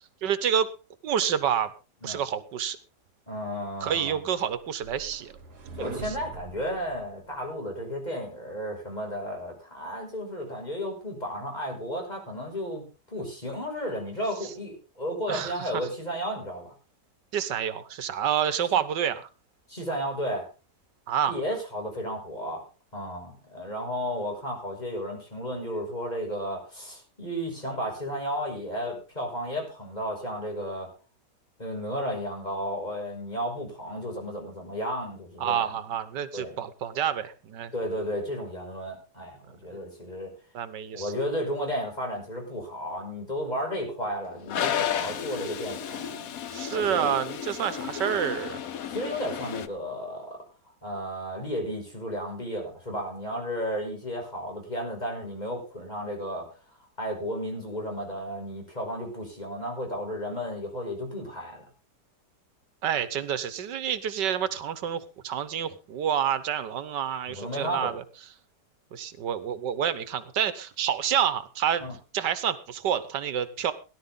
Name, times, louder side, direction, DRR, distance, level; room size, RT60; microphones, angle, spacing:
voice 1, 0.2-0.7 1.0-1.7 2.0-2.8 3.8-5.3 5.8-6.1 15.3-15.7 17.3-19.3 21.1-21.4 35.4-37.7 40.5-41.1 46.5-48.6 62.8-68.0 68.9-71.9 72.1-73.7, right 9 dB, 90° right, 14 dB, 1.7 m, -28 dB
voice 2, 3.3-4.3 5.8-16.7 19.7-20.5 21.3-22.6 22.9-30.9 31.6-35.8 36.3-36.6 37.7-40.3 40.9-46.3 46.7-47.2 48.9-50.4 50.8-56.5 57.0-61.7 67.3-68.0 71.8-72.0, equal, 25° left, 1 dB, 6.0 m, -33 dB
sound 1, 4.2-7.5, right 4 dB, 70° right, 2.3 m, -43 dB
Toilet flush, 44.5-49.7, left 9 dB, 60° left, 1.3 m, -33 dB
17.5 x 11.5 x 3.8 m, 0.32 s
omnidirectional pair, 1.8 m